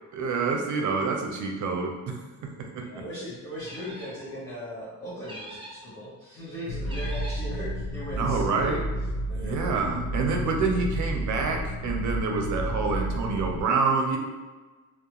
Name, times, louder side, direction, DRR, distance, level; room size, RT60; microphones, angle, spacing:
voice 1, 0.1-3.0 8.2-8.8 9.3-14.2, right 4 dB, 70° right, 2 dB, 0.5 m, -27 dB
voice 2, 2.7-8.8 9.3-9.8 13.1-13.6, equal, 40° left, -11 dB, 0.8 m, -39 dB
sound 1, 3.6-4.3 5.2-5.9 6.8-7.5, right 1 dB, 15° right, 0.4 m, -43 dB
sound 2, 6.7-13.6, equal, 80° left, 0.5 m, -31 dB
2.3 x 2.0 x 2.9 m, 1.3 s
cardioid pair, 120°, 31 cm